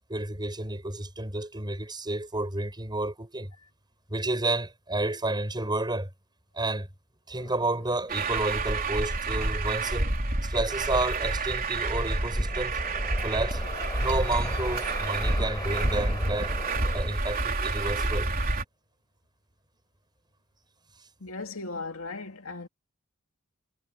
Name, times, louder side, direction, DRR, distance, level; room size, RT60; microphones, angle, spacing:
voice 1, 0.1-3.5 4.1-6.1 6.5-6.9 7.3-10.1 10.4-12.8 13.2-13.6 14.0-16.5 16.9-18.3, right 2 dB, 20° right, 7.1 m, -30 dB
sound 1, 7.3-17.2, left 2 dB, 20° left, 5.9 m, -43 dB
Truck, 8.1-18.6, right 2 dB, 40° right, 3.9 m, -29 dB
voice 2, 21.2-22.7, left 3 dB, 70° left, 2.6 m, -37 dB
head